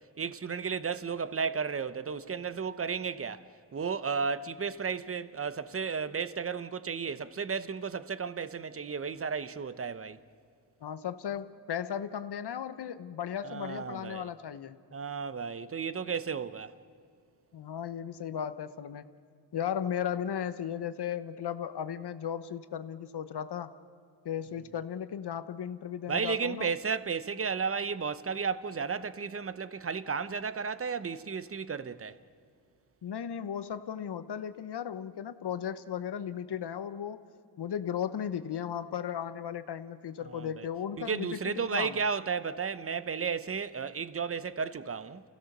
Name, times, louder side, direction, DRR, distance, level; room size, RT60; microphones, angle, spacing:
voice 1, 0.2-3.4 3.7-10.2 13.4-14.3 14.9-16.7 26.1-32.2 40.3-40.7 41.0-45.2, right 6 dB, 30° right, 0.9 m, -33 dB
voice 2, 10.8-14.8 17.5-19.1 19.5-23.7 24.2-26.7 33.0-37.2 37.6-42.0, left 9 dB, 65° left, 1.1 m, -36 dB
28.5 x 16.5 x 6.7 m
cardioid pair, 80°, 43 cm